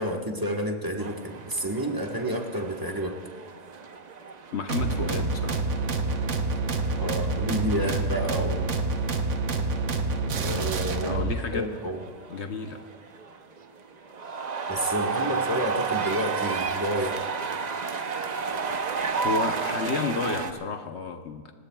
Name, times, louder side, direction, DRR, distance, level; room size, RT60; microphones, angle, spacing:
voice 1, 0.0-3.2 6.9-8.7 10.4-11.2 11.5-12.0 14.7-17.2, equal, 15° right, 2 dB, 1.2 m, -30 dB
sound 1, 1.0-20.5, right 5 dB, 40° right, 0.6 m, -33 dB
voice 2, 4.5-5.7 11.0-11.7 12.3-12.8 19.2-21.5, left 4 dB, 55° left, 6 dB, 1.0 m, -31 dB
sound 2, 4.7-11.4, right 3 dB, 60° right, 1.2 m, -27 dB
29.5 x 16.5 x 2.3 m, 1.5 s
omnidirectional pair, 1.5 m